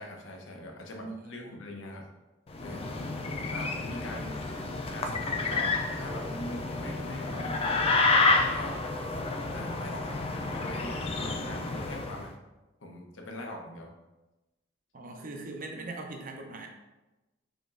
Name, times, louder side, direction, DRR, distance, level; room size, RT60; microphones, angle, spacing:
voice 1, 0.0-2.1 2.6-2.9 3.5-4.4 4.9-7.9 8.4-8.8 9.5-10.2 10.5-12.3 12.8-13.9, left 1 dB, 80° left, 1 dB, 0.7 m, -42 dB
voice 2, 1.0-1.6 14.9-16.7, right 2 dB, 45° right, 3 dB, 0.6 m, -41 dB
sound 1, 2.5-12.3, left 3 dB, 30° left, 0.3 m, -30 dB
5.0 x 3.0 x 2.5 m, 1.0 s
head